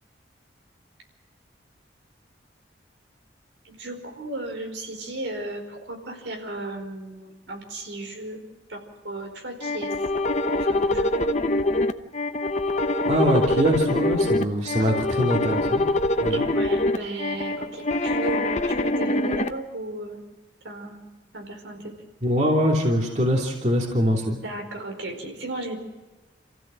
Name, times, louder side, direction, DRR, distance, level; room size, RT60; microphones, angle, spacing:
voice 1, 3.6-8.4 8.7-9.9 10.5-11.3 14.7-15.0 16.3-20.2 20.6-21.0 21.3-21.9 24.4-25.7, right 2 dB, 80° right, 3 dB, 4.9 m, -35 dB
sound 1, 9.6-19.5, left 2 dB, 40° left, 0.9 m, -24 dB
voice 2, 13.0-15.8 16.2-16.4 22.2-24.4, equal, 40° right, -1 dB, 3.0 m, -23 dB
28.5 x 15.5 x 7.6 m, 1.1 s
head